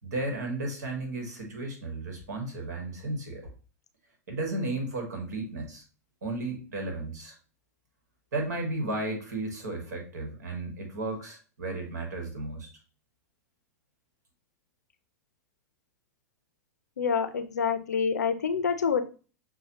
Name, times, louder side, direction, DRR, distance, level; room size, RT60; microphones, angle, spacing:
voice 1, 0.0-3.5 4.3-5.8 6.2-7.3 8.3-12.7, right 2 dB, 70° right, 2 dB, 1.4 m, -34 dB
voice 2, 17.0-19.0, left 6 dB, 80° left, 9 dB, 0.5 m, -27 dB
6.2 x 2.3 x 2.8 m, 0.35 s
figure-of-eight pair, 90°, 9 cm